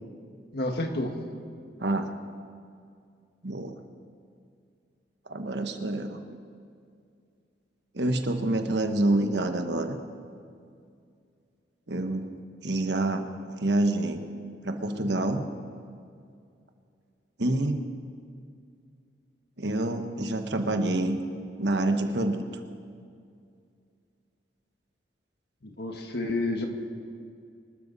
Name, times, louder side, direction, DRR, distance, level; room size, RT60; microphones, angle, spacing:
voice 1, 0.5-1.1 25.6-26.7, left 2 dB, 60° left, 4 dB, 1.7 m, -30 dB
voice 2, 3.4-3.7 5.3-6.2 7.9-9.9 11.9-12.3 12.6-13.3 13.6-14.2 14.6-15.4 17.4-17.8 19.6-21.2 21.6-22.4, right 2 dB, 70° right, 6 dB, 1.2 m, -27 dB
25.5 x 12.5 x 4.1 m, 2.3 s
head